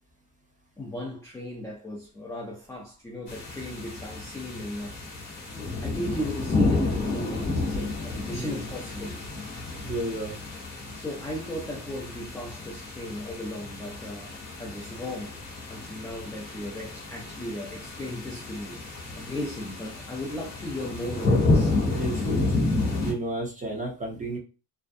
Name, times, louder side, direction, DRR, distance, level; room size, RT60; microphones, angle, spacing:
voice 1, 0.8-5.0 5.8-9.2 11.0-15.4 15.7-18.8 19.2-21.8, left 1 dB, 10° left, 0.4 m, -36 dB
sound 1, 3.3-23.1, left 2 dB, 30° left, 1.0 m, -30 dB
voice 2, 9.8-10.4 21.9-22.5 23.0-24.4, right 1 dB, 20° right, 0.8 m, -32 dB
2.6 x 2.1 x 2.5 m
cardioid pair, 140°, 37 cm